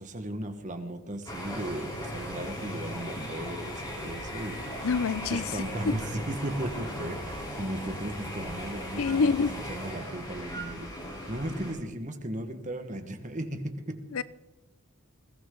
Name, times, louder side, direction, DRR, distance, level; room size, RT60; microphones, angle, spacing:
voice 1, 0.0-4.9 5.2-10.9 11.3-14.0, right 1 dB, 35° right, 1.5 m, -36 dB
sound 1, 1.3-11.7, equal, 20° left, 3.8 m, -38 dB
voice 2, 4.8-5.4 5.9-6.0 9.0-9.5 14.1-14.2, left 5 dB, 70° left, 0.5 m, -26 dB
21.0 x 16.5 x 3.9 m
head